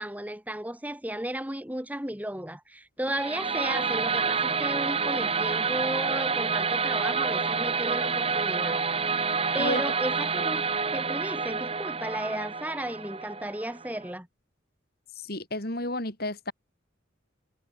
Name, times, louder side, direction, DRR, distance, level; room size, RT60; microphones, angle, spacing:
voice 1, 0.0-8.8 9.1-10.6 10.9-14.3, right 1 dB, 10° right, 2.2 m, -34 dB
sound 1, 3.1-14.1, right 5 dB, 30° right, 2.6 m, -28 dB
voice 2, 15.3-16.5, left 1 dB, 50° left, 5.5 m, -31 dB
head